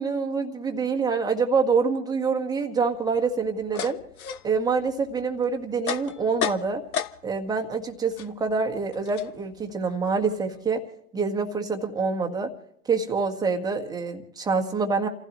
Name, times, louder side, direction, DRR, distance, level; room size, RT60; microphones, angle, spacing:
voice 1, 0.0-4.0 4.4-6.9 7.2-10.8 11.1-12.5 12.9-15.1, right 4 dB, 10° right, 3 dB, 1.5 m, -26 dB
sound 1, 2.9-7.5 7.8-10.7, left 9 dB, 65° left, 1.1 m, -35 dB
29.0 x 15.5 x 3.0 m, 0.69 s
hypercardioid pair, 125°, 46 cm